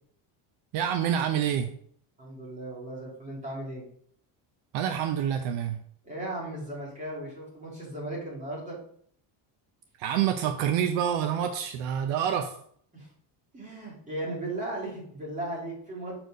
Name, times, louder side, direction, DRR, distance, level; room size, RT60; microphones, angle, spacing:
voice 1, 0.7-1.7 4.7-5.8 10.0-12.5, right 9 dB, 65° right, 7 dB, 0.7 m, -27 dB
voice 2, 2.2-3.8 6.0-8.8 12.9-13.1 13.5-16.2, right 1 dB, 15° right, -5 dB, 2.7 m, -36 dB
6.5 x 4.5 x 5.1 m, 0.62 s
cardioid pair, 175°, 48 cm